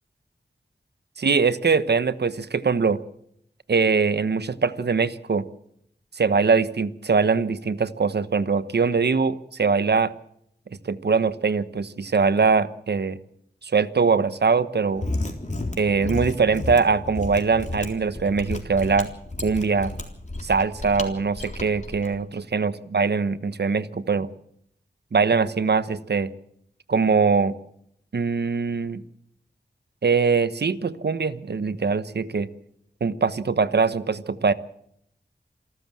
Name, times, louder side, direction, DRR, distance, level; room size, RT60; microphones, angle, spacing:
voice 1, 1.2-3.0 3.7-5.4 6.2-10.1 10.8-13.2 13.6-15.1 15.8-19.1 19.4-19.9 20.4-24.3 25.1-26.3 26.9-27.6 28.1-29.0 30.0-32.5 33.0-34.5, right 5 dB, 70° right, 14 dB, 1.1 m, -22 dB
Mechanisms, 14.9-22.1, left 2 dB, 45° left, 3.6 m, -32 dB
27.5 x 13.0 x 7.6 m, 0.72 s
wide cardioid pair, 55°, 18 cm